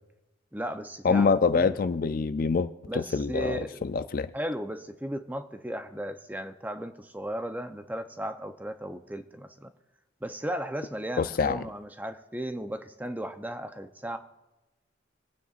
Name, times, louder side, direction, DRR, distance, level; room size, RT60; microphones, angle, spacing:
voice 1, 0.5-1.8 2.9-3.8 4.3-9.7 10.2-14.2, right 1 dB, 10° right, 0.6 m, -35 dB
voice 2, 1.0-4.3 11.2-11.6, left 4 dB, 45° left, 0.4 m, -26 dB
26.5 x 9.2 x 2.5 m
head